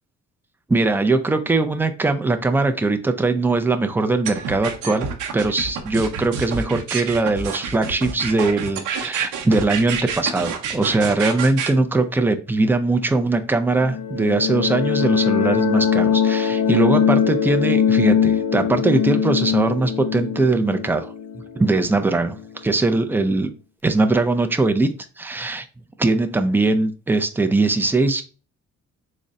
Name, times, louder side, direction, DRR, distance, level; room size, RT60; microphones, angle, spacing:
voice 1, 0.7-5.1 5.3-23.5 23.8-24.9 25.2-25.6 26.0-28.2, right 3 dB, 5° right, 7 dB, 0.4 m, -21 dB
sound 1, 4.2-11.7, right 6 dB, 85° right, 0.7 m, -28 dB
sound 2, 13.8-22.4, left 8 dB, 60° left, 0.5 m, -21 dB
3.8 x 2.1 x 3.5 m, 0.35 s
cardioid pair, 90°, 30 cm